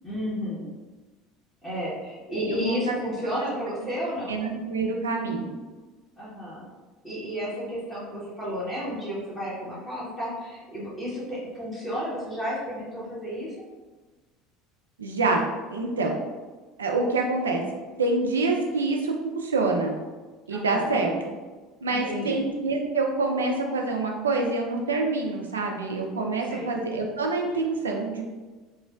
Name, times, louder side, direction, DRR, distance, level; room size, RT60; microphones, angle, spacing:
voice 1, 0.0-0.7 1.6-4.4 6.2-6.7 7.0-13.5 20.5-21.1 21.9-22.4 26.5-26.7, equal, 15° left, -9 dB, 1.1 m, -32 dB
voice 2, 2.3-3.0 4.3-5.5 15.0-15.4 15.7-16.1 16.8-17.6 18.0-20.0 20.5-21.1 21.8-28.2, right 3 dB, 85° right, 1 dB, 0.3 m, -26 dB
3.0 x 2.1 x 2.4 m, 1.3 s
figure-of-eight pair, 70°, 0 cm